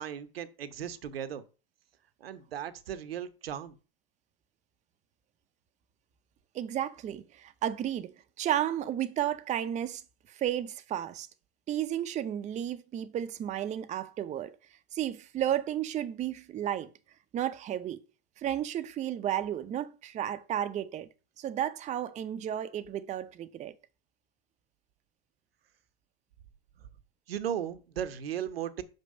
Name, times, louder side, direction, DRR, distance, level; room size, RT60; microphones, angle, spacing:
voice 1, 0.0-1.4 2.2-3.8 27.3-28.8, right 9 dB, 80° right, 0.9 m, -36 dB
voice 2, 6.5-10.0 10.3-11.3 11.7-14.6 14.9-16.9 17.3-18.0 18.4-21.1 21.4-23.7, right 11 dB, 25° right, 0.6 m, -33 dB
6.0 x 5.3 x 5.3 m
hypercardioid pair, 95°, 29 cm